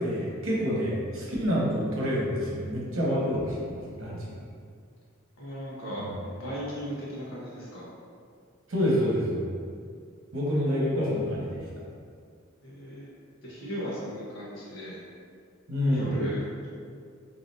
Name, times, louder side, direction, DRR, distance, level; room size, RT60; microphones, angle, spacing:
voice 1, 0.0-4.4 6.1-6.2 8.7-9.5 10.3-11.6 15.7-16.1, equal, 80° right, -5 dB, 1.1 m, -27 dB
voice 2, 5.4-7.9 12.6-13.1 13.4-15.0 15.9-16.7, equal, 80° left, -7 dB, 1.3 m, -36 dB
4.1 x 3.5 x 2.7 m, 2.2 s
head